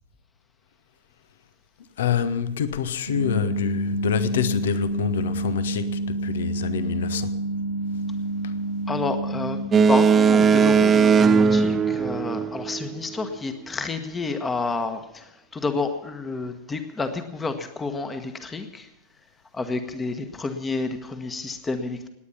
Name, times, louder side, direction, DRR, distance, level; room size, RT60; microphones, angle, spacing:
voice 1, 2.0-7.3 8.4-8.5, left 9 dB, 60° left, 1.0 m, -27 dB
sound 1, 3.1-9.6, right 2 dB, 75° right, 1.9 m, -28 dB
voice 2, 8.9-9.6 9.9-18.9 19.5-22.1, left 3 dB, 15° left, 1.3 m, -30 dB
Boat Water vehicle, 9.7-12.8, right 5 dB, 20° right, 0.7 m, -18 dB
18.5 x 9.6 x 7.1 m
figure-of-eight pair, 90°, 0 cm